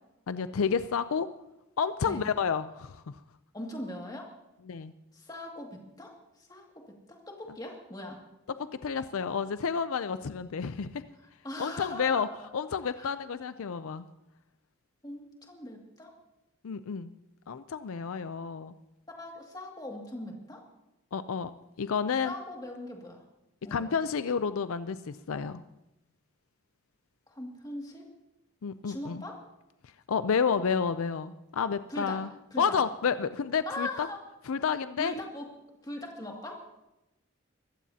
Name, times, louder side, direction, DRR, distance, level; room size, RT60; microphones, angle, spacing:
voice 1, 0.3-1.3 1.8-3.2 4.7-4.9 8.8-11.0 11.6-12.3 12.5-14.1 16.6-17.1 17.5-18.7 21.1-21.5 21.8-22.3 23.7-25.6 28.6-29.2 30.1-32.3 32.6-34.1 34.5-35.1, left 6 dB, 75° left, 12 dB, 0.5 m, -30 dB
voice 2, 3.5-4.3 5.1-6.8 7.1-8.2 11.4-12.3 13.0-13.1 15.0-16.1 19.1-20.6 22.2-23.2 23.6-23.9 27.3-28.1 28.8-29.4 31.9-32.2 32.5-32.8 33.7-34.2 35.0-35.5 35.8-36.6, left 1 dB, 15° left, 0 dB, 2.2 m, -40 dB
23.0 x 15.0 x 2.8 m, 0.92 s
head